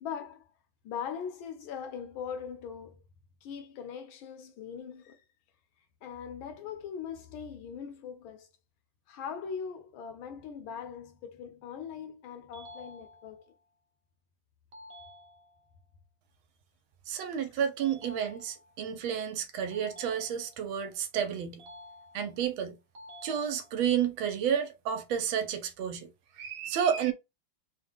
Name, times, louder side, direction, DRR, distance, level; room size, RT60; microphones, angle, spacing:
voice 1, 0.0-0.5 0.8-3.0 3.4-5.2 6.0-8.5 9.1-13.5, left 7 dB, 80° left, 1.6 m, -40 dB
sound 1, 12.5-13.5 14.7-15.7 17.8-18.8 19.7-20.8 21.6-22.5 22.9-23.9, left 1 dB, 65° right, 0.6 m, -51 dB
voice 2, 17.1-21.6 22.1-22.8 23.2-26.1 26.3-27.1, right 8 dB, 85° right, 1.5 m, -31 dB
3.7 x 2.1 x 3.5 m
omnidirectional pair, 2.2 m